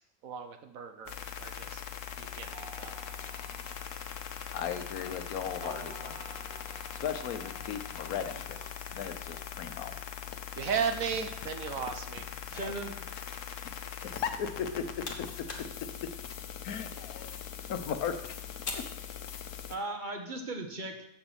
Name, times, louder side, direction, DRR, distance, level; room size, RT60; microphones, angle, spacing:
voice 1, 0.2-1.8 2.2-3.0 10.6-12.2, right 6 dB, 70° right, 7 dB, 1.3 m, -35 dB
sound 1, 1.1-19.8, left 8 dB, 65° left, 1.1 m, -41 dB
sound 2, 2.5-8.7, right 3 dB, 90° right, 2.3 m, -51 dB
voice 2, 4.5-6.2 6.6-9.9 12.5-12.7 14.4-14.8 15.2-15.3 16.0-16.1 16.6-17.4 17.7-18.1 18.7-18.8, left 8 dB, 85° left, 9 dB, 1.3 m, -37 dB
voice 3, 12.5-13.0 19.7-21.0, right 2 dB, 35° right, 3 dB, 1.2 m, -37 dB
sound 3, 14.5-19.8, left 3 dB, 40° left, 1.4 m, -46 dB
7.2 x 6.9 x 7.1 m, 0.80 s
omnidirectional pair, 1.5 m